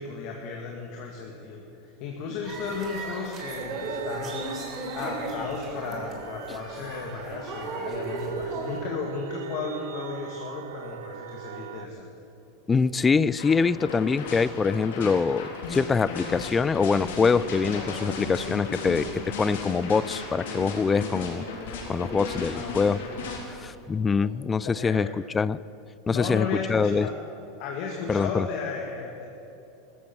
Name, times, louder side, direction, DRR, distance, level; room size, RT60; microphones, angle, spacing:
voice 1, 0.0-4.4 4.9-12.1 22.5-23.1 24.2-24.3 24.6-25.2 26.1-27.1 27.6-29.3, left 5 dB, 55° left, 0 dB, 2.0 m, -34 dB
sound 1, 2.4-8.8, right 2 dB, 35° right, 3.6 m, -36 dB
sound 2, 3.4-11.9, right 9 dB, 85° right, 0.7 m, -40 dB
voice 2, 12.7-21.5 21.9-23.0 23.5-25.1 25.3-25.6 26.1-27.1 28.1-28.5, left 5 dB, 20° left, 19 dB, 0.3 m, -24 dB
sound 3, 13.4-23.4, left 3 dB, 80° left, 3.5 m, -35 dB
14.5 x 14.5 x 6.1 m, 2.8 s
supercardioid pair, 120°, 0 cm